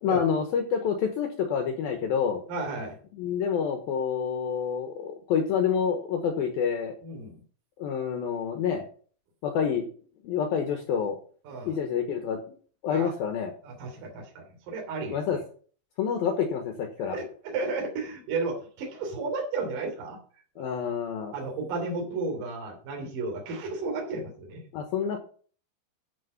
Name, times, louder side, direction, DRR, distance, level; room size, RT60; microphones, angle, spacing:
voice 1, 0.0-2.4 3.1-6.9 7.8-8.8 9.4-9.9 10.2-11.2 11.6-12.4 12.8-13.5 15.1-15.4 16.0-17.2 20.6-21.3 24.7-25.2, left 7 dB, 70° left, 5 dB, 2.5 m, -28 dB
voice 2, 2.5-3.0 7.0-7.4 11.4-11.8 12.9-13.1 13.6-15.2 17.0-20.2 21.3-24.6, right 3 dB, 50° right, 0 dB, 4.4 m, -33 dB
11.5 x 5.9 x 5.7 m, 0.43 s
omnidirectional pair, 5.2 m